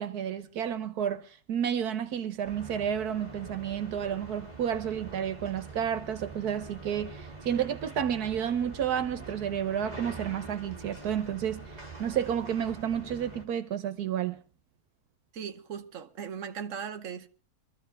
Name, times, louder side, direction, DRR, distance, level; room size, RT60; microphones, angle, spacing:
voice 1, 0.0-11.7 12.0-14.4, right 9 dB, 90° right, 1.6 m, -31 dB
sound 1, 2.4-13.4, right 3 dB, 25° right, 3.0 m, -45 dB
voice 2, 15.3-17.3, right 7 dB, 60° right, 1.4 m, -38 dB
23.5 x 14.0 x 3.6 m
omnidirectional pair, 1.6 m